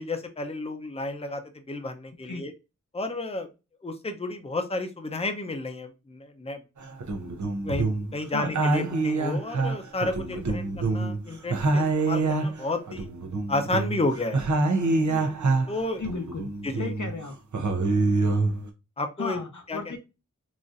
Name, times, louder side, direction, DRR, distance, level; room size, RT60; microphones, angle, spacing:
voice 1, 0.0-1.4 1.7-2.5 2.9-3.5 3.8-6.6 7.6-13.1 13.5-14.4 15.1-15.3 15.7-16.0 16.6-16.9 19.0-19.4 19.7-20.0, left 2 dB, 20° left, 5 dB, 0.6 m, -31 dB
sound 1, 6.8-8.2 8.4-11.2 11.5-15.8 16.0-17.1 17.5-18.7, right 3 dB, 70° right, 0.7 m, -26 dB
voice 2, 16.0-16.5 16.8-17.3 19.2-20.0, left 4 dB, 70° left, 4 dB, 0.8 m, -34 dB
4.0 x 2.5 x 2.4 m, 0.27 s
wide cardioid pair, 45°, 30 cm